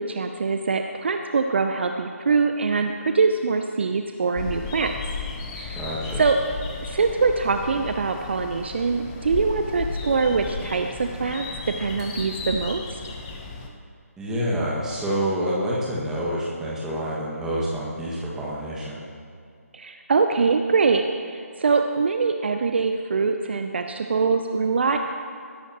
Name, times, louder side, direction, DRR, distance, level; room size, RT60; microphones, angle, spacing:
voice 1, 0.0-4.9 5.5-5.8 6.2-6.4 6.8-11.5 11.8-13.0 19.7-21.0 21.3-25.0, right 4 dB, 45° right, 6 dB, 0.6 m, -23 dB
sound 1, 4.4-13.7, left 4 dB, 20° left, 0.9 m, -34 dB
voice 2, 5.7-6.2 14.2-19.0, equal, 5° right, -7 dB, 1.9 m, -27 dB
20.0 x 11.0 x 3.0 m, 2.3 s
figure-of-eight pair, 150°, 8 cm